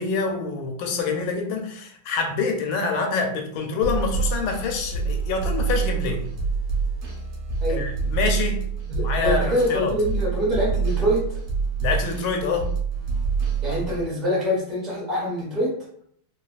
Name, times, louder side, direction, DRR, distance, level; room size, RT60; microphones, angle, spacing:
voice 1, 0.0-6.2 7.7-8.6 9.0-9.9 11.8-12.7, left 4 dB, 85° left, 3 dB, 1.4 m, -26 dB
sound 1, 3.8-14.0, right 5 dB, 90° right, 1.5 m, -26 dB
voice 2, 8.9-11.4 13.6-15.7, equal, ahead, -6 dB, 0.6 m, -25 dB
3.3 x 2.2 x 2.3 m, 0.64 s
omnidirectional pair, 2.2 m